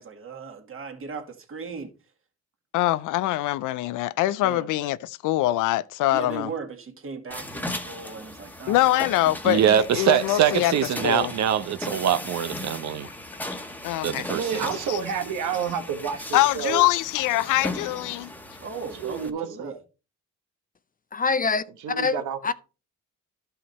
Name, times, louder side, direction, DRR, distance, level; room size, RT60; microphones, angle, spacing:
voice 1, 0.0-1.9 4.4-4.7 6.1-8.8 18.6-19.8, right 5 dB, 45° right, 2.1 m, -37 dB
voice 2, 2.7-6.5 8.7-9.6 9.9-10.7 11.0-11.3 13.8-14.3 14.9-15.0 16.3-18.3, left 16 dB, 85° left, 0.5 m, -23 dB
sound 1, 7.3-19.3, left 1 dB, 5° left, 1.2 m, -37 dB
voice 3, 9.4-13.1 14.0-14.4, right 9 dB, 65° right, 0.8 m, -23 dB
voice 4, 14.3-16.8 18.9-19.8 21.8-22.5, right 7 dB, 85° right, 1.4 m, -29 dB
voice 5, 21.1-22.5, left 4 dB, 30° left, 0.6 m, -26 dB
12.0 x 5.6 x 4.2 m
cardioid pair, 90°, 30 cm